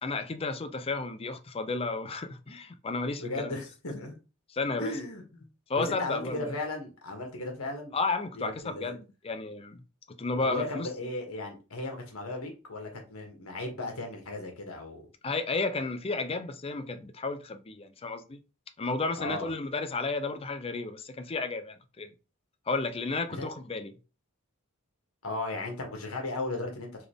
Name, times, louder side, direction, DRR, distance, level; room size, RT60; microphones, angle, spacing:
voice 1, 0.0-3.6 4.5-4.9 5.7-6.5 7.9-9.8 10.2-10.9 15.2-18.4 18.8-22.1 22.7-23.9, left 3 dB, 25° left, 0.4 m, -32 dB
voice 2, 3.2-4.2 4.8-5.5 5.8-7.9 8.4-9.0 10.4-15.1 19.2-19.5 23.3-23.5 25.2-27.1, left 2 dB, 75° left, 1.5 m, -36 dB
4.0 x 3.5 x 3.5 m
head